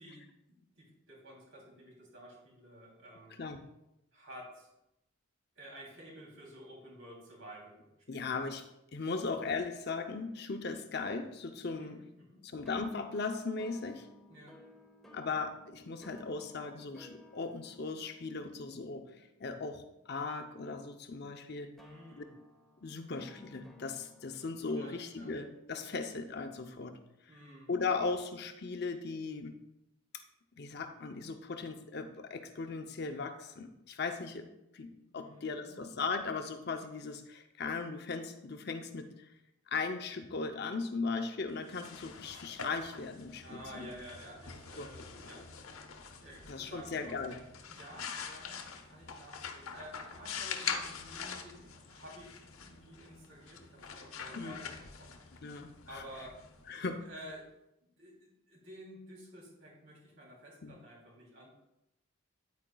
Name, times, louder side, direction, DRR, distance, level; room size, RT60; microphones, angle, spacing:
voice 1, 0.0-3.4 4.1-4.7 5.5-8.4 11.7-12.4 14.3-14.6 21.8-22.3 24.7-25.3 27.3-27.8 35.0-35.8 43.4-45.0 45.3-45.8 46.2-47.2 47.7-54.7 55.0-55.4 55.8-56.4 57.0-57.5 57.8-61.5, equal, 65° right, -3 dB, 3.0 m, -52 dB
voice 2, 8.1-8.6 8.9-12.0 12.4-14.1 15.1-21.7 22.1-22.2 22.8-27.0 27.7-29.5 30.1-30.2 30.6-34.5 34.7-39.3 39.7-43.9 44.8-44.9 46.4-47.4 54.3-54.6 55.4-56.0 56.7-57.0 60.6-60.8, left 4 dB, 50° left, 7 dB, 0.6 m, -38 dB
sound 1, 12.7-20.5 21.8-27.0, left 1 dB, ahead, 0.9 m, -58 dB
sound 2, 41.5-57.2, left 6 dB, 80° left, 0.8 m, -44 dB
9.3 x 8.7 x 2.3 m, 0.88 s
head